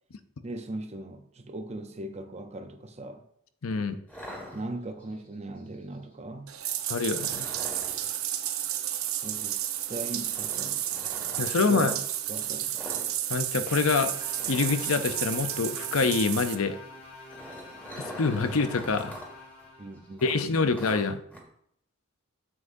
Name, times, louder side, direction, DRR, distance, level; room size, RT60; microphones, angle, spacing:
voice 1, 0.4-3.3 4.5-6.5 9.2-10.8 11.5-12.8 19.8-20.6, right 2 dB, 30° right, 0.7 m, -39 dB
voice 2, 3.6-4.0 6.9-7.5 11.4-11.9 13.3-14.1 14.5-16.8 18.2-19.2 20.2-21.2, left 4 dB, 85° left, 0.7 m, -26 dB
sound 1, 4.1-5.1 7.1-8.1 10.3-11.5 12.7-13.1 13.4-13.6 13.9-14.0 14.3-15.5 17.0-19.3 19.6-19.7 20.2-21.4, equal, 5° left, 1.9 m, -43 dB
Bathtub (filling or washing), 6.5-16.5, right 12 dB, 90° right, 0.7 m, -32 dB
sound 2, 13.7-20.1, left 2 dB, 45° left, 2.5 m, -47 dB
9.7 x 7.6 x 2.7 m
head